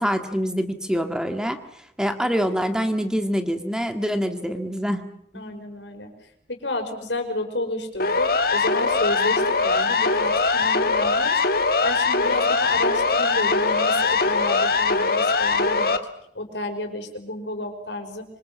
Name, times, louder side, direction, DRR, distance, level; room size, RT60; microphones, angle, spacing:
voice 1, 0.0-1.6 2.0-5.0 5.3-5.4, equal, 5° right, 6 dB, 1.8 m, -25 dB
voice 2, 5.3-6.1 6.5-16.0 16.3-18.2, left 2 dB, 90° left, 5 dB, 5.4 m, -31 dB
Siren, 8.0-16.0, left 4 dB, 55° left, 2.0 m, -21 dB
26.5 x 25.5 x 7.5 m, 0.74 s
head